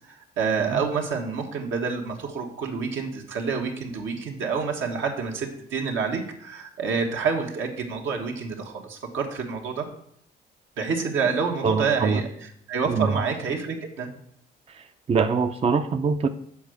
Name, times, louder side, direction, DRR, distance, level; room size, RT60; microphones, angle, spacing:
voice 1, 0.0-9.8 10.8-12.3 12.7-14.1, right 5 dB, 75° right, 2 dB, 1.5 m, -28 dB
voice 2, 11.6-12.2 12.9-13.2 14.7-16.3, right 5 dB, 30° right, 8 dB, 0.5 m, -24 dB
7.1 x 4.8 x 6.5 m, 0.71 s
cardioid pair, 90°, 20 cm